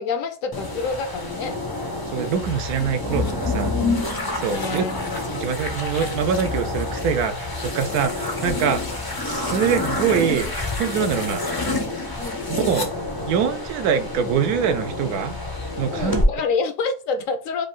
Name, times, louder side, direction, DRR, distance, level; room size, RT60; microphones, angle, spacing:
voice 1, 0.0-1.6 4.5-5.4 8.8-9.0 12.2-12.5 15.9-17.7, left 4 dB, 70° left, 0.9 m, -28 dB
sound 1, 0.5-16.3, left 2 dB, 35° left, 0.3 m, -27 dB
voice 2, 2.1-3.7 4.3-4.8 5.4-8.8 9.2-10.5 10.7-11.4 12.7-12.9 13.2-15.4 15.8-16.2, right 7 dB, 80° right, 1.1 m, -24 dB
5.0 x 2.4 x 3.7 m
omnidirectional pair, 1.6 m